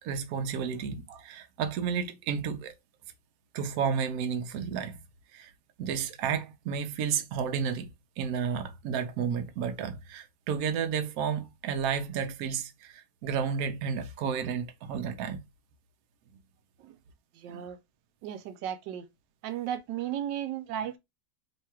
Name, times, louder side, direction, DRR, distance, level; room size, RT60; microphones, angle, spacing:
voice 1, 0.0-2.7 3.5-5.0 5.3-5.5 5.8-7.9 8.2-15.4 17.5-17.7, right 7 dB, 65° right, 1.0 m, -32 dB
voice 2, 17.3-17.8 18.2-19.1 19.4-21.0, right 10 dB, 85° right, 1.3 m, -35 dB
3.2 x 2.3 x 4.3 m
omnidirectional pair, 1.9 m